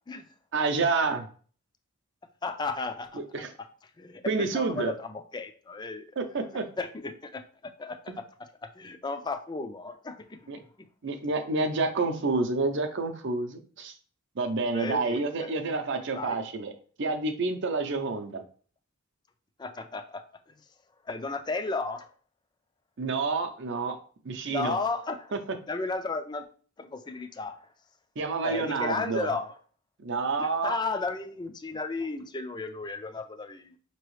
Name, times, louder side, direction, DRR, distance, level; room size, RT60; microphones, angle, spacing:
voice 1, 0.5-1.3 3.1-3.5 4.3-4.9 6.2-6.6 8.1-8.2 10.5-10.6 11.0-13.9 14.4-16.7 17.0-18.4 23.0-24.0 24.2-24.8 28.2-29.3 30.0-30.8, right 3 dB, 60° right, 7 dB, 0.6 m, -29 dB
voice 2, 2.4-3.2 4.0-6.1 6.4-6.5 6.8-8.0 8.8-10.6 14.7-15.5 16.1-16.4 19.6-20.2 21.1-22.1 24.5-25.3 25.7-26.4 26.8-27.6 28.4-29.5 30.4-33.8, left 3 dB, 20° left, 8 dB, 0.4 m, -34 dB
5.4 x 2.9 x 3.1 m, 0.42 s
head